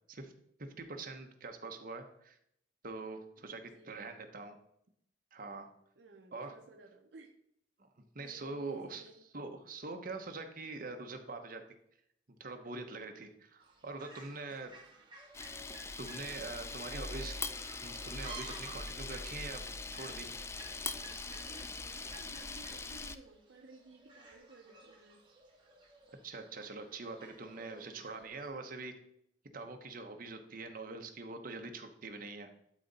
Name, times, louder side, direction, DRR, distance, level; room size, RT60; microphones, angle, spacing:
voice 1, 0.6-2.4 2.8-4.6 5.3-5.7 6.3-6.5 8.1-9.0 9.3-11.6 12.4-14.8 16.0-17.3 17.8-19.6 19.9-20.3 26.2-29.0 29.5-32.5, right 3 dB, 50° right, 5 dB, 1.0 m, -44 dB
voice 2, 3.4-4.2 6.0-7.3 8.2-9.2 14.3-15.1 16.6-17.2 20.5-25.3 27.6-28.1, right 3 dB, 75° right, 3 dB, 0.7 m, -57 dB
Fowl, 13.6-28.5, right 3 dB, 30° right, 1.6 m, -55 dB
Camera, 15.3-23.2, left 3 dB, 15° left, 0.3 m, -42 dB
11.5 x 3.9 x 4.1 m, 0.73 s
head